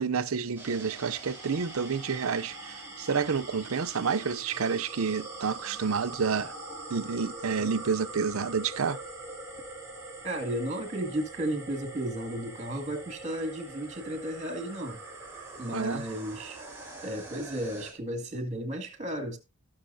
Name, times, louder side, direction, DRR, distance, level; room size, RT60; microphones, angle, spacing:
voice 1, 0.0-6.5 6.9-9.0 15.7-16.0, right 5 dB, 70° right, 0.6 m, -29 dB
sound 1, 0.6-17.9, right 2 dB, 10° right, 4.1 m, -43 dB
voice 2, 10.2-15.0 15.6-16.6 17.0-19.4, right 1 dB, 30° right, 2.1 m, -34 dB
18.0 x 6.2 x 2.7 m
head